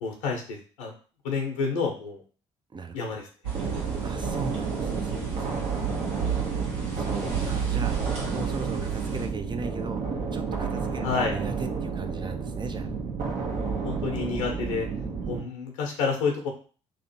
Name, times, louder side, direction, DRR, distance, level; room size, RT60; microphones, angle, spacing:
voice 1, 0.0-0.9 1.2-2.2 2.9-3.2 11.0-11.4 13.5-14.9 15.3-16.5, left 5 dB, 80° left, 1 dB, 1.0 m, -29 dB
voice 2, 2.7-3.2 4.0-5.9 6.5-6.6 6.9-8.0 8.3-10.0 10.3-12.9, right 4 dB, 30° right, 7 dB, 0.7 m, -38 dB
sound 1, 3.4-9.3, right 8 dB, 80° right, 1.4 m, -32 dB
sound 2, 3.5-15.4, right 5 dB, 55° right, 1.1 m, -31 dB
3.3 x 2.8 x 4.3 m, 0.38 s
hypercardioid pair, 50°, 15 cm